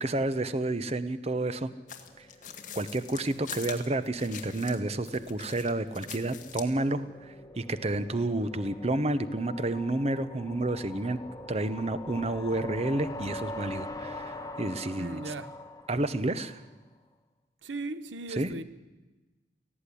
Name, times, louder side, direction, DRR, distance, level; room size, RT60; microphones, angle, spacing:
voice 1, 0.0-1.7 2.2-2.3 2.7-11.2 11.5-15.3 15.9-16.6 18.3-18.5, right 2 dB, 35° right, 0.8 m, -30 dB
sound 1, 1.7-16.7, left 1 dB, 20° left, 1.1 m, -44 dB
sound 2, 1.9-4.8 5.1-6.8, left 9 dB, 45° left, 1.9 m, -43 dB
voice 2, 15.0-15.6 17.6-18.6, right 2 dB, 85° right, 0.9 m, -37 dB
18.5 x 14.5 x 10.0 m
head